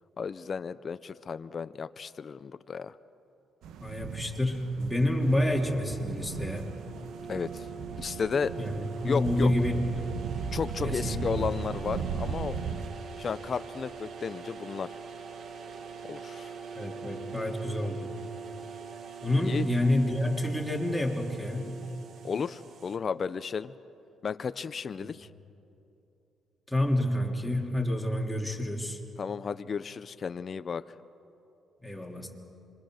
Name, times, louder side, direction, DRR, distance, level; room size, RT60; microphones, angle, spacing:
voice 1, 0.2-2.9 7.3-7.7 8.0-8.6 9.1-9.5 10.5-12.6 13.2-15.0 16.0-16.6 19.4-19.7 22.2-23.7 24.2-25.3 29.2-30.8, left 6 dB, 45° left, 12 dB, 0.6 m, -33 dB
sound 1, 3.6-12.9, right 6 dB, 85° right, 1.2 m, -37 dB
voice 2, 3.8-6.7 8.6-10.0 10.8-11.2 16.7-18.1 19.2-21.8 25.0-25.1 26.7-29.0 31.8-32.3, left 1 dB, 5° left, 0 dB, 3.2 m, -28 dB
sound 2, 5.1-23.0, right 5 dB, 60° right, 1.8 m, -43 dB
26.5 x 23.5 x 6.5 m, 2.8 s
cardioid pair, 90°, 0 cm